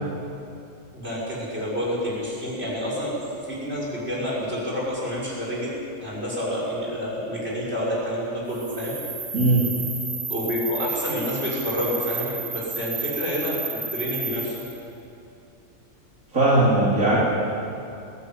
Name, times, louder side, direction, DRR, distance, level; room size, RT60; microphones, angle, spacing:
voice 1, 0.9-5.7 6.0-9.0 10.3-13.6 13.9-14.5, equal, 50° right, -6 dB, 6.7 m, -28 dB
sound 1, 8.5-14.8, right 4 dB, 25° right, 2.8 m, -32 dB
voice 2, 16.3-17.2, right 2 dB, 80° right, -7 dB, 3.6 m, -18 dB
21.0 x 15.0 x 9.3 m, 2.7 s
omnidirectional pair, 1.4 m